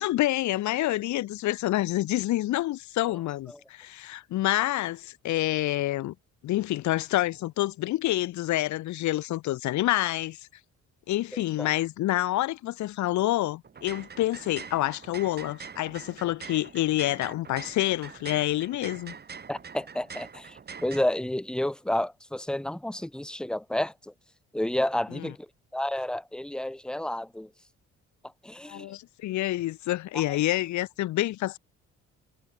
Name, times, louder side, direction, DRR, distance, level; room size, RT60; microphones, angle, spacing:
voice 1, 0.0-6.1 6.4-10.4 11.1-19.1 25.2-25.3 28.7-31.6, left 15 dB, 70° left, 0.7 m, -27 dB
voice 2, 11.3-11.7 19.5-24.1 24.5-25.5 25.7-27.5 28.4-28.9 30.1-30.4, left 1 dB, 5° left, 0.7 m, -31 dB
sound 1, 13.6-21.0, right 6 dB, 35° right, 1.4 m, -44 dB
cardioid pair, 90°, 30 cm